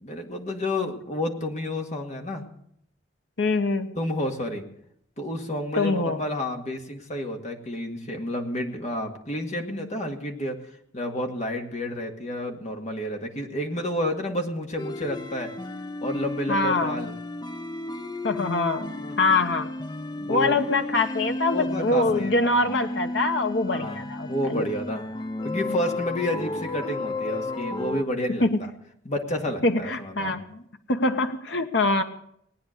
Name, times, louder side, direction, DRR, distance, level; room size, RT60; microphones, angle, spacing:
voice 1, 0.0-2.4 4.0-4.6 5.2-10.6 10.9-15.5 16.0-17.1 18.9-19.2 20.2-20.6 21.5-22.7 23.7-24.0 24.3-25.0 25.4-28.7 29.1-30.4, left 1 dB, 40° left, 3 dB, 2.0 m, -30 dB
voice 2, 3.4-3.9 5.7-6.2 16.5-16.9 18.2-19.7 20.3-24.7 28.4-28.6 29.6-30.6 30.9-32.0, left 2 dB, 65° left, 6 dB, 1.0 m, -24 dB
French Ditty, 14.8-28.0, left 2 dB, 20° left, 0.5 m, -33 dB
19.0 x 9.5 x 6.6 m, 0.70 s
head